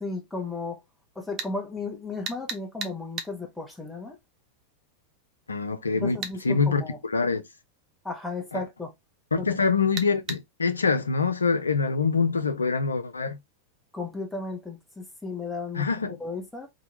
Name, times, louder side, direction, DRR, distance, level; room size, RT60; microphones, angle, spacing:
voice 1, 0.0-0.8 1.2-4.2 6.0-7.0 8.0-8.9 9.4-9.5 13.9-15.9 16.2-16.7, left 3 dB, 5° left, 0.8 m, -34 dB
sound 1, 1.4-1.5 2.3-3.3 6.2-6.4 10.0-10.4, right 5 dB, 35° right, 0.6 m, -33 dB
voice 2, 5.5-6.2 6.4-7.4 8.5-8.6 9.3-13.4 15.7-16.1, left 4 dB, 75° left, 0.5 m, -25 dB
2.9 x 2.3 x 3.0 m
figure-of-eight pair, 90°, 0 cm